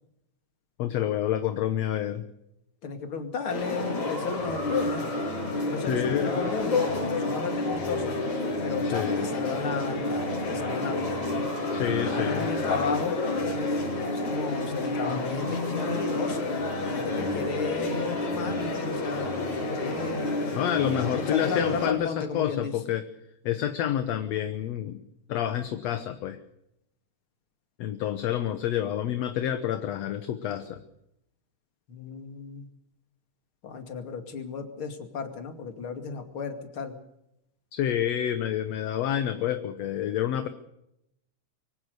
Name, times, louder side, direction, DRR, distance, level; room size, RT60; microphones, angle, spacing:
voice 1, 0.8-2.2 5.9-6.3 8.9-9.3 11.7-12.5 20.5-23.1 23.5-25.0 25.3-26.4 27.8-30.8 37.7-40.5, left 10 dB, 65° left, 9 dB, 2.1 m, -28 dB
voice 2, 2.8-5.1 5.6-8.2 8.6-11.2 11.7-13.2 14.1-16.5 16.9-19.4 19.7-20.3 21.1-22.8 31.9-32.7 33.6-36.9, left 5 dB, 45° left, 6 dB, 3.1 m, -34 dB
sound 1, 3.5-21.9, left 2 dB, 85° left, 7.8 m, -29 dB
24.5 x 17.5 x 6.7 m, 0.82 s
omnidirectional pair, 3.3 m